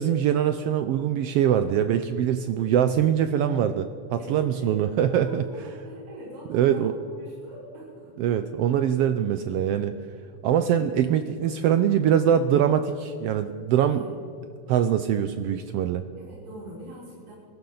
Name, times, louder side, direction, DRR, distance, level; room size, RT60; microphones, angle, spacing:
voice 1, 0.0-5.4 6.5-6.9 8.2-9.9 10.4-14.0 14.7-16.0, right 9 dB, 85° right, 10 dB, 1.3 m, -23 dB
voice 2, 4.2-8.1 13.9-14.1 15.9-17.3, right 1 dB, 65° right, -7 dB, 4.9 m, -43 dB
23.0 x 13.0 x 3.9 m, 2.7 s
omnidirectional pair, 3.3 m